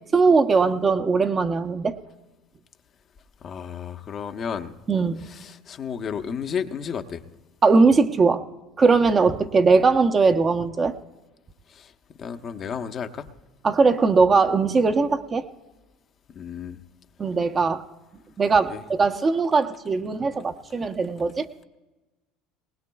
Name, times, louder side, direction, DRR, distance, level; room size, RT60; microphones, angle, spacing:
voice 1, 0.1-2.0 4.9-5.2 7.6-8.4 8.8-10.9 13.6-15.5 17.2-17.8 18.4-21.5, right 4 dB, 30° right, 8 dB, 0.8 m, -20 dB
voice 2, 3.4-4.8 5.2-7.2 11.7-11.9 12.2-13.3 16.3-16.8 18.7-18.8, left 7 dB, 45° left, 7 dB, 0.9 m, -32 dB
19.5 x 19.5 x 2.3 m, 1.1 s
hypercardioid pair, 75°, 0 cm